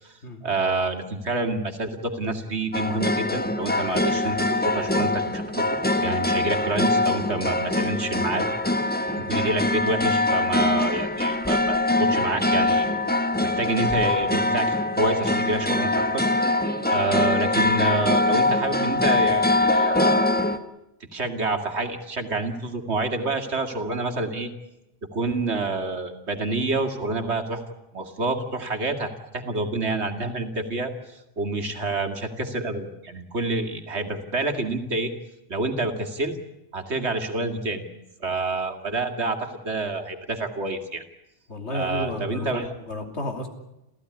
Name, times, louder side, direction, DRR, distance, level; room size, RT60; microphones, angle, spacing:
voice 1, 0.4-8.5 9.2-12.9 13.4-16.2 16.9-20.3 21.0-24.5 25.0-27.6 27.9-35.1 35.5-36.4 36.7-37.8 38.2-41.0 41.7-42.7, right 2 dB, 75° right, 5 dB, 2.5 m, -28 dB
sound 1, 2.7-20.6, left 2 dB, 10° left, 1.1 m, -23 dB
voice 2, 41.5-42.5 42.9-43.5, left 1 dB, 75° left, 4 dB, 3.3 m, -32 dB
28.0 x 15.0 x 9.8 m, 0.91 s
omnidirectional pair, 1.2 m